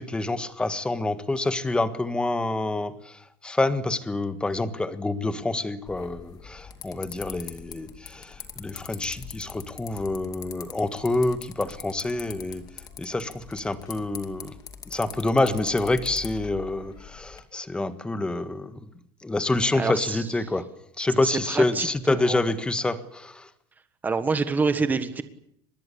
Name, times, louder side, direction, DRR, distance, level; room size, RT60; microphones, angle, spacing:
voice 1, 0.0-12.6 13.0-14.5 14.9-18.8 19.2-20.6 21.0-23.5, left 2 dB, 10° left, 11 dB, 1.5 m, -27 dB
sound 1, 5.9-17.4, left 8 dB, 30° left, 2.5 m, -43 dB
voice 2, 19.7-20.2 21.2-22.4 24.0-25.2, right 4 dB, 15° right, 10 dB, 1.5 m, -26 dB
24.5 x 21.0 x 8.6 m, 0.71 s
supercardioid pair, 155°, 13 cm